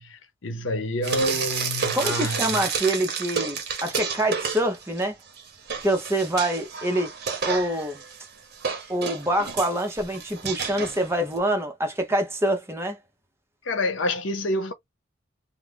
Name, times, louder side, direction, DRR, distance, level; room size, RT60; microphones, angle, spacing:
voice 1, 0.0-2.6 13.6-14.7, left 1 dB, 75° left, 0.7 m, -28 dB
Frying (food), 1.0-5.0 5.4-11.4, right 6 dB, 55° right, 0.8 m, -31 dB
voice 2, 1.9-5.2 5.8-7.1 7.4-8.0 8.9-13.0, right 1 dB, 15° right, 0.7 m, -25 dB
2.5 x 2.1 x 3.4 m
head